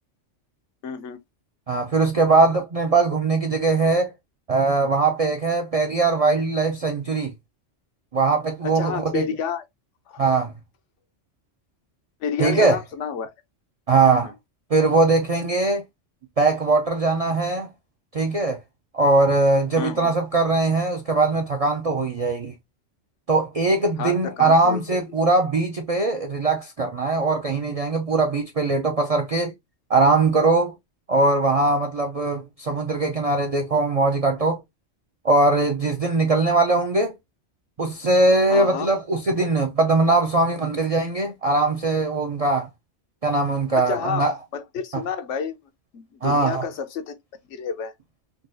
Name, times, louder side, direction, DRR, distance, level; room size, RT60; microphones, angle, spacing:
voice 1, 0.8-1.2 8.6-9.6 10.1-10.4 12.2-13.3 14.0-14.3 19.8-20.1 24.0-25.0 38.5-38.9 43.8-44.2 44.5-45.6 45.9-47.1 47.5-47.9, left 7 dB, 80° left, 1.0 m, -30 dB
voice 2, 1.7-4.1 4.5-7.3 8.1-9.2 10.2-10.5 12.4-12.8 13.9-14.3 14.7-15.8 16.4-17.7 18.1-18.6 18.9-22.5 23.3-29.5 29.9-30.7 31.1-34.6 35.2-37.1 37.8-42.7 43.2-44.4 46.2-46.6, right 3 dB, 55° right, 0.4 m, -21 dB
3.8 x 2.3 x 2.5 m
omnidirectional pair, 1.2 m